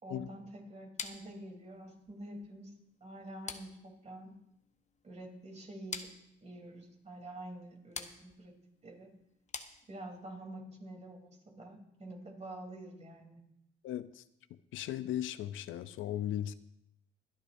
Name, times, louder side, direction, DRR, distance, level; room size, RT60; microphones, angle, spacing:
voice 1, 0.0-4.4 5.0-6.1 6.4-8.5 8.8-9.1 9.9-13.4, right 1 dB, 35° right, 1 dB, 3.5 m, -47 dB
sound 1, 1.0-10.3, left 5 dB, 35° left, 1.1 m, -48 dB
voice 2, 13.8-14.2 14.5-16.5, left 11 dB, 80° left, 13 dB, 0.6 m, -37 dB
24.5 x 9.9 x 2.7 m, 0.78 s
cardioid pair, 90°, 20 cm